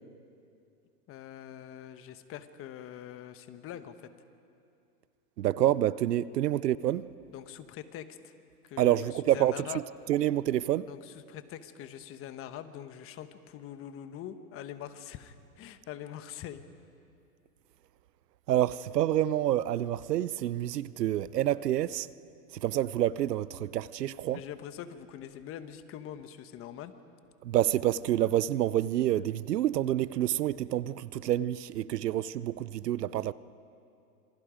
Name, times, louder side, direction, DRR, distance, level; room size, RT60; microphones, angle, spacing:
voice 1, 1.1-4.1 7.3-8.3 8.6-9.9 10.9-16.7 24.3-26.9, left 10 dB, 30° left, 1.2 m, -43 dB
voice 2, 5.4-7.1 8.8-9.5 10.1-10.9 18.5-22.1 22.6-24.4 27.4-33.3, right 12 dB, 90° right, 0.8 m, -28 dB
27.0 x 25.5 x 5.1 m
hypercardioid pair, 130°, 47 cm